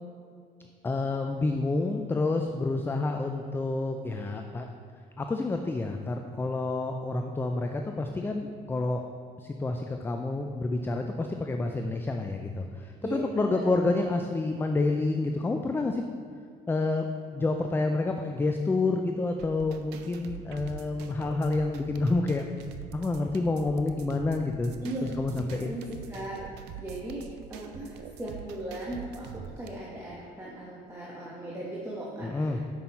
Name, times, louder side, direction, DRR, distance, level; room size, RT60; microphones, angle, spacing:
voice 1, 0.8-4.7 5.2-9.0 9.4-16.0 16.7-17.1 17.3-22.4 22.9-24.7 25.2-25.8 32.2-32.6, left 2 dB, 15° left, 4 dB, 0.3 m, -28 dB
voice 2, 13.0-13.7 24.8-25.1 25.5-25.8 26.1-26.4 26.8-27.2 27.5-29.3 29.6-32.8, right 1 dB, 15° right, -6 dB, 1.1 m, -38 dB
sound 1, 19.4-29.7, right 7 dB, 85° right, 0.5 m, -44 dB
6.1 x 5.4 x 4.3 m, 2.2 s
cardioid pair, 110°, 17 cm